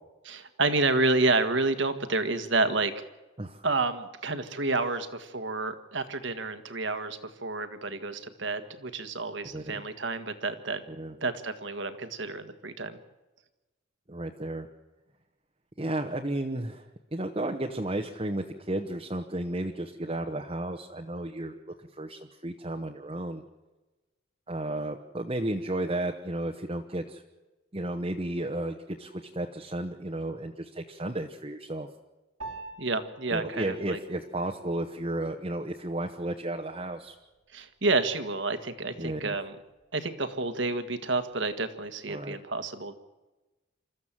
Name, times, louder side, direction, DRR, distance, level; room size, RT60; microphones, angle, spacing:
voice 1, 0.2-2.9 3.6-10.8 11.2-13.0 32.8-34.0 37.5-39.5 39.9-42.9, right 3 dB, 65° right, 10 dB, 1.7 m, -29 dB
voice 2, 14.1-14.7 15.8-16.8 17.1-23.4 24.5-27.2 27.7-31.9 33.3-37.1 39.0-39.4 42.1-42.4, right 1 dB, 30° right, 2 dB, 1.1 m, -33 dB
Piano, 32.4-42.0, right 3 dB, 85° right, 3.0 m, -51 dB
28.0 x 14.0 x 7.5 m, 1.1 s
head